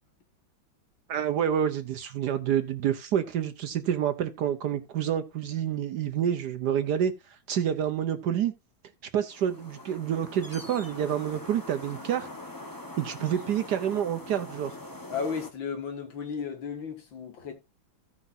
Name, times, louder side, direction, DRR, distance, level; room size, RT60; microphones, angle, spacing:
voice 1, 1.1-7.1 7.5-8.5 9.1-12.3 13.0-14.7, right 9 dB, 65° right, 1.2 m, -28 dB
sound 1, 9.3-15.5, left 1 dB, 20° left, 0.5 m, -43 dB
voice 2, 15.1-17.5, left 6 dB, 70° left, 2.5 m, -34 dB
16.0 x 5.7 x 2.6 m
omnidirectional pair, 2.2 m